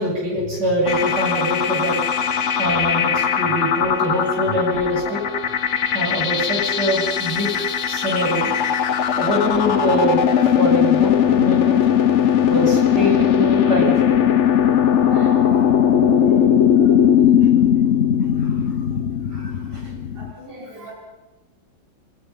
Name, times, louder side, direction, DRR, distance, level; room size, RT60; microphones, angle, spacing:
voice 1, 0.0-2.0 2.6-5.2 5.9-7.5 7.9-8.5 9.2-11.8 12.5-14.2 16.0-16.1 16.4-16.7 19.3-19.9, equal, 60° right, -2 dB, 8.7 m, -23 dB
sound 1, 0.9-20.3, left 9 dB, 45° left, 1.2 m, -19 dB
voice 2, 4.1-4.6 9.0-9.1 11.1-11.2 12.1-12.4 12.9-13.2 13.8-13.9 14.4-17.0 18.4-18.6 20.0-20.9, right 1 dB, 30° right, -3 dB, 5.3 m, -35 dB
27.5 x 25.0 x 5.6 m, 1.1 s
omnidirectional pair, 2.0 m